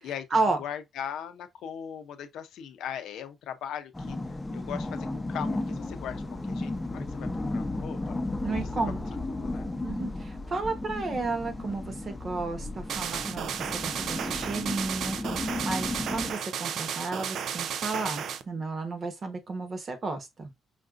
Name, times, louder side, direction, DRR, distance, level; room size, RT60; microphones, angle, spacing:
voice 1, 0.0-0.6 8.4-9.0 9.8-13.5 13.7-20.5, right 3 dB, 45° right, 1.1 m, -32 dB
voice 2, 0.6-8.2 8.5-8.7 9.3-9.7, left 9 dB, 80° left, 0.5 m, -39 dB
sound 1, 3.9-16.3, left 2 dB, 15° left, 0.7 m, -34 dB
sound 2, 12.9-18.4, right 8 dB, 70° right, 0.4 m, -33 dB
5.1 x 2.6 x 2.4 m
cardioid pair, 90°, 0 cm